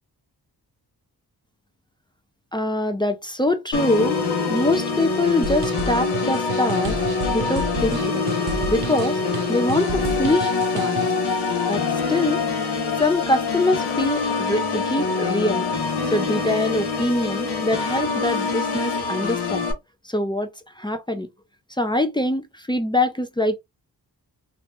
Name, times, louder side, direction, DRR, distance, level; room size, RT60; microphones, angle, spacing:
voice 1, 2.5-4.2 4.5-7.0 7.3-8.2 8.7-9.2 9.5-11.0 11.7-11.8 12.1-12.4 13.0-15.6 16.1-19.7 20.0-20.5 20.8-21.3 21.8-23.6, left 1 dB, 10° left, 0.4 m, -23 dB
Organ, 3.7-19.7, left 4 dB, 75° left, 0.9 m, -25 dB
sound 1, 5.4-11.3, right 5 dB, 65° right, 0.6 m, -32 dB
2.6 x 2.6 x 3.2 m
wide cardioid pair, 120°, 40 cm